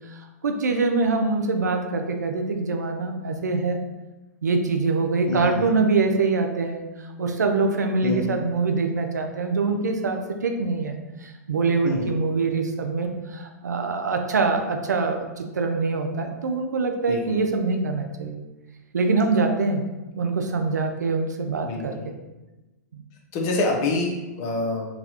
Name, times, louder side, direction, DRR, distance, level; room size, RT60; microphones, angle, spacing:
voice 1, 0.1-3.8 4.4-6.8 7.2-10.9 11.2-18.4 18.9-19.9 20.1-22.0 22.9-23.0, right 3 dB, 85° right, 4 dB, 0.4 m, -24 dB
voice 2, 5.3-5.7 8.0-8.4 11.8-12.1 17.1-17.4 21.6-22.0 23.3-24.9, left 2 dB, 40° left, 1 dB, 0.7 m, -26 dB
4.0 x 2.3 x 2.8 m, 1.1 s
hypercardioid pair, 110°, 9 cm